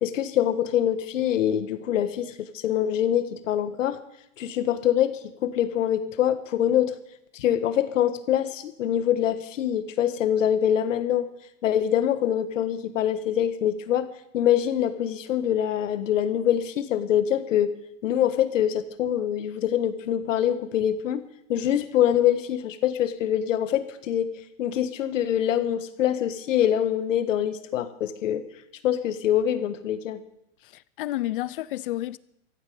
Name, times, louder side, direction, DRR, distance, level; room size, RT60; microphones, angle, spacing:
voice 1, 0.0-4.0 4.4-7.0 7.3-11.3 11.6-14.1 14.3-21.2 21.5-24.3 24.6-28.4 28.8-30.2, left 10 dB, 80° left, 1.6 m, -24 dB
voice 2, 30.6-32.2, left 15 dB, 45° left, 0.5 m, -31 dB
15.0 x 8.7 x 9.4 m
supercardioid pair, 170°, 38 cm